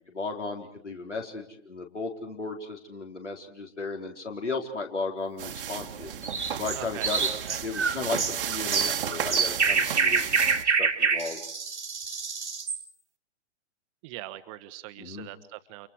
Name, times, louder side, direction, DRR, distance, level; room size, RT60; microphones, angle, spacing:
voice 1, 0.0-6.1 6.5-7.3 7.6-8.2 8.5-10.3 10.6-11.4 15.0-15.3, left 3 dB, 75° left, 2 dB, 4.4 m, -35 dB
sound 1, 5.4-10.6, right 9 dB, 50° right, 1.5 m, -33 dB
sound 2, 6.2-12.8, right 5 dB, 70° right, 1.9 m, -26 dB
voice 2, 6.7-7.1 7.5-7.6 14.0-15.9, right 16 dB, 25° right, 12 dB, 1.1 m, -41 dB
30.0 x 28.5 x 4.8 m, 0.65 s
figure-of-eight pair, 115°, 36 cm